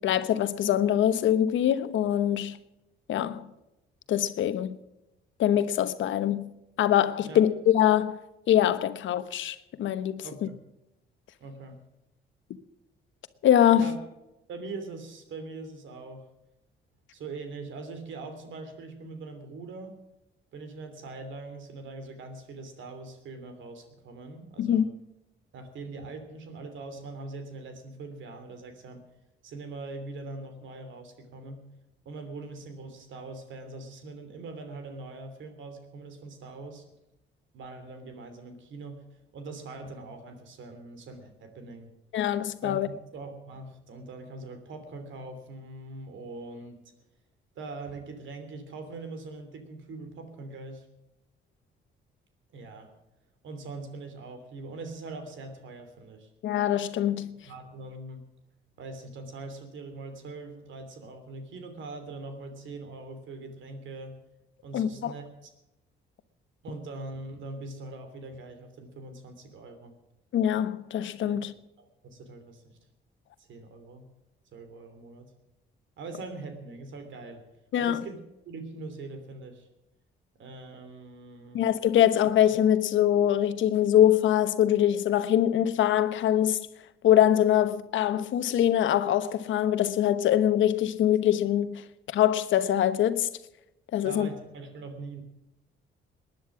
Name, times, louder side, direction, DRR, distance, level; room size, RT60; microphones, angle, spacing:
voice 1, 0.0-2.6 3.1-3.5 4.1-4.8 5.4-6.5 6.8-8.2 8.5-10.5 13.4-14.0 24.6-24.9 42.1-42.9 56.4-57.5 64.7-65.1 70.3-71.5 77.7-78.0 81.5-86.7 87.0-93.3 93.9-94.3, left 11 dB, 75° left, 1.1 m, -23 dB
voice 2, 10.2-10.5 11.4-11.8 13.7-14.0 14.5-16.3 17.1-20.0 20.5-24.8 25.5-29.0 29.4-31.7 32.0-36.8 37.5-41.9 42.6-42.8 43.1-46.8 47.5-50.9 52.5-52.9 53.4-56.3 57.4-58.2 58.8-64.2 64.6-65.5 66.6-69.9 71.3-71.4 71.8-72.8 73.4-74.0 74.5-75.3 76.0-77.4 77.8-79.7 80.4-81.6 94.0-95.2, right 3 dB, 75° right, 3.0 m, -42 dB
19.5 x 10.5 x 6.1 m
cardioid pair, 90°, 20 cm